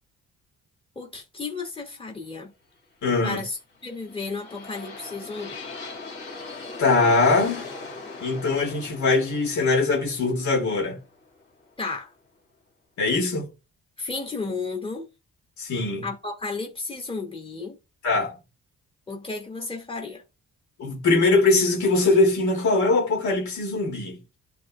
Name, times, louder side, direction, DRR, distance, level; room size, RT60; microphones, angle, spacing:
voice 1, 1.0-2.5 3.2-5.6 11.8-12.1 14.0-15.1 16.0-17.8 19.1-20.2, left 4 dB, 20° left, 2.7 m, -33 dB
voice 2, 3.0-3.4 6.8-7.7 8.2-11.0 13.0-13.5 15.6-16.1 18.0-18.4 20.8-24.2, left 3 dB, 70° left, 3.0 m, -22 dB
sound 1, 3.7-11.7, left 3 dB, 40° left, 3.7 m, -40 dB
12.0 x 4.3 x 2.5 m
cardioid pair, 90°, 30 cm